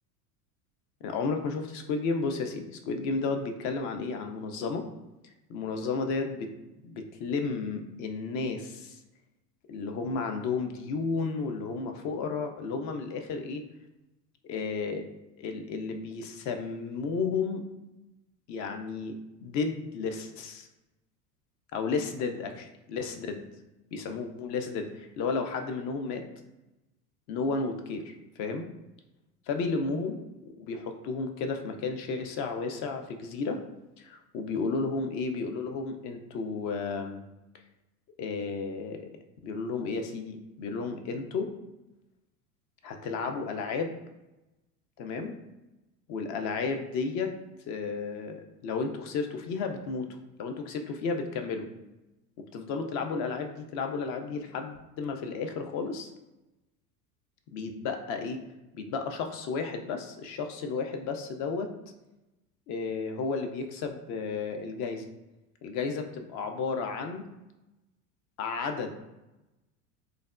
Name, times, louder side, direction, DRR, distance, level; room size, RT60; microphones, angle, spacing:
voice 1, 1.0-4.9 5.5-6.5 6.8-9.0 9.7-13.6 14.4-15.0 15.4-17.6 18.5-20.7 21.7-23.4 23.9-26.2 27.3-28.7 29.5-30.2 30.4-33.6 34.0-37.2 38.2-39.1 39.4-41.5 42.8-44.0 45.0-45.4 46.1-47.3 47.7-50.1 50.4-51.7 52.5-56.1 57.5-58.4 58.7-61.7 62.7-65.1 65.6-67.2 68.4-68.9, left 4 dB, 40° left, 5 dB, 0.4 m, -33 dB
3.3 x 2.2 x 2.4 m, 0.99 s
hypercardioid pair, 90°, 46 cm